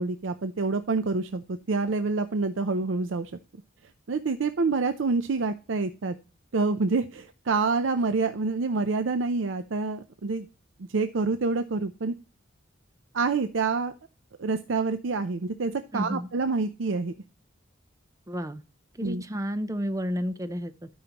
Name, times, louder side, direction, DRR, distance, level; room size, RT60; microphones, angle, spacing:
voice 1, 0.0-3.3 4.1-6.2 6.5-10.5 10.9-12.1 13.1-13.9 14.4-17.1 19.0-19.2, right 4 dB, 75° right, 0.5 m, -27 dB
voice 2, 15.9-16.3 18.3-18.6 18.9-20.9, equal, 15° right, 0.6 m, -31 dB
12.5 x 5.5 x 2.9 m
head